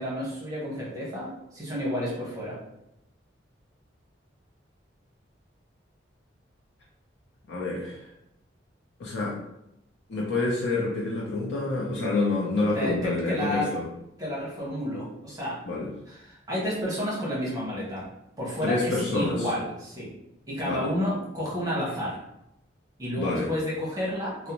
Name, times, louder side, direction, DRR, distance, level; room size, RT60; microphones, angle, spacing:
voice 1, 0.0-2.6 12.7-13.7 14.2-15.6 16.1-18.1 18.4-20.1 20.5-22.1 23.0-24.5, equal, 20° right, -7 dB, 0.8 m, -31 dB
voice 2, 7.5-8.0 9.0-9.3 10.1-13.9 15.7-15.9 18.6-19.5 20.6-20.9 23.2-23.5, left 3 dB, 70° left, -5 dB, 0.5 m, -27 dB
2.5 x 2.0 x 2.9 m, 0.85 s
head